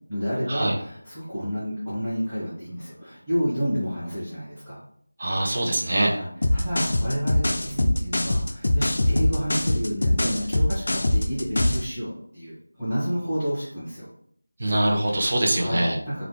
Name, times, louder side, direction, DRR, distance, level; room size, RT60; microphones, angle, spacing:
voice 1, 0.1-4.8 6.1-14.1 15.6-16.2, equal, ahead, -12 dB, 1.2 m, -30 dB
voice 2, 5.2-6.1 14.6-16.0, right 1 dB, 35° right, -1 dB, 0.6 m, -23 dB
sound 1, 6.4-11.9, left 1 dB, 55° left, 0.3 m, -22 dB
3.2 x 2.4 x 3.3 m, 0.64 s
figure-of-eight pair, 170°, 0 cm